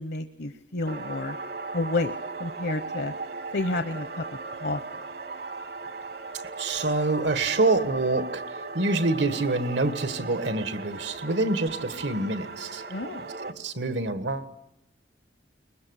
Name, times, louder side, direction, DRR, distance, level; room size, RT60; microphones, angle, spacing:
voice 1, 0.0-1.4 1.7-3.1 3.5-4.2 4.6-5.0 12.9-13.3, left 2 dB, 65° left, 10 dB, 0.8 m, -30 dB
sound 1, 0.9-13.5, right 3 dB, 60° right, 1.1 m, -37 dB
voice 2, 6.6-12.8 13.4-14.5, right 2 dB, 85° right, 11 dB, 1.6 m, -26 dB
23.0 x 20.5 x 8.2 m, 0.84 s
head